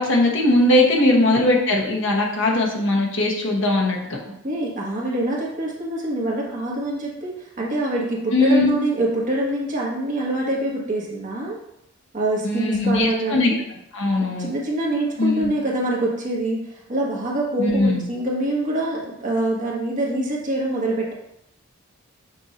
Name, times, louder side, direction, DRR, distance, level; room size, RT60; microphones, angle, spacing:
voice 1, 0.0-4.0 8.3-8.7 12.4-13.5 13.9-14.5 15.2-15.5 17.6-18.1, left 2 dB, 55° left, -1 dB, 1.1 m, -19 dB
voice 2, 4.3-11.6 12.1-13.6 14.4-21.1, right 1 dB, 35° right, -3 dB, 1.3 m, -25 dB
6.8 x 2.7 x 5.2 m, 0.80 s
head